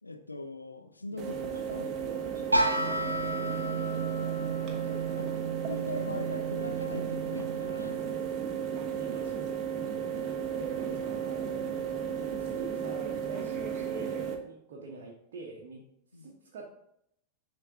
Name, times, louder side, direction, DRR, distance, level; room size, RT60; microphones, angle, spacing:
voice 1, 0.0-2.1 4.0-4.7 5.2-5.3 5.7-8.1 10.1-10.3 16.1-16.3, left 2 dB, 80° left, 6 dB, 0.7 m, -41 dB
voice 2, 1.1-3.5 4.7-5.2 9.0-9.6 10.2-15.8 16.1-16.7, right 3 dB, 50° right, -2 dB, 1.2 m, -45 dB
sound 1, 1.2-14.3, right 8 dB, 30° right, 1.2 m, -34 dB
sound 2, 2.5-8.3, right 2 dB, 85° right, 0.7 m, -33 dB
10.5 x 3.9 x 3.7 m, 0.76 s
figure-of-eight pair, 90°, 0 cm